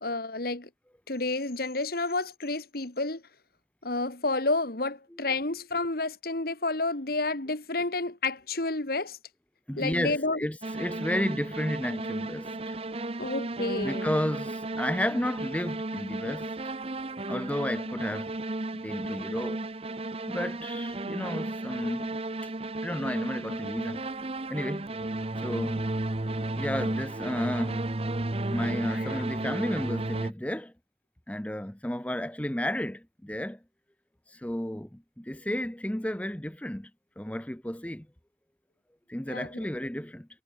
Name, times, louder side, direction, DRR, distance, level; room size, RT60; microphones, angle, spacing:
voice 1, 0.0-0.7 1.1-3.2 3.8-9.2 9.8-10.4 13.2-14.1 28.9-29.2 39.3-39.5, left 2 dB, 55° left, 1.9 m, -30 dB
voice 2, 9.7-13.1 13.8-16.5 17.3-18.3 18.7-19.6 20.3-22.2 22.8-24.1 24.5-24.9 25.4-25.9 26.5-27.9 28.5-30.7 31.3-33.6 34.3-36.9 37.2-38.1 39.1-40.3, left 1 dB, 5° left, 0.8 m, -32 dB
sound 1, 10.6-30.3, right 2 dB, 30° right, 0.9 m, -34 dB
head